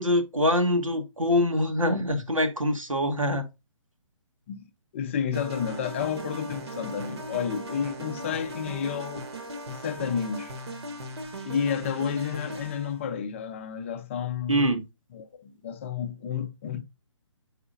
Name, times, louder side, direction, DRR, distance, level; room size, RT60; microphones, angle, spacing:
voice 1, 0.0-3.5 14.5-14.8, left 1 dB, 85° right, 1.4 m, -24 dB
voice 2, 4.9-9.3 9.7-10.6 11.4-14.7 15.1-16.8, left 7 dB, 25° left, 0.5 m, -31 dB
sound 1, 5.3-13.0, right 1 dB, 55° right, 1.2 m, -38 dB
7.7 x 4.8 x 2.6 m
figure-of-eight pair, 135°, 16 cm